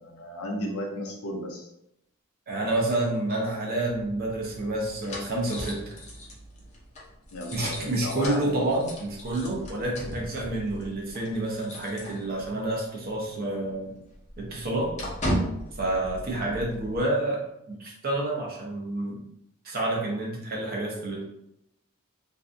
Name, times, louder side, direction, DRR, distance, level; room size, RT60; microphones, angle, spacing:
voice 1, 0.0-1.7 7.3-8.6 16.4-16.9, left 1 dB, 90° left, 1 dB, 0.6 m, -35 dB
voice 2, 2.5-6.0 7.5-13.9 14.4-14.9 15.8-17.4 17.7-19.2 19.6-21.2, right 2 dB, 45° right, -2 dB, 0.7 m, -29 dB
sound 1, 4.0-12.7 13.0-13.2 13.5-17.0, equal, 35° left, 0.6 m, -37 dB
2.6 x 2.3 x 2.5 m, 0.79 s
head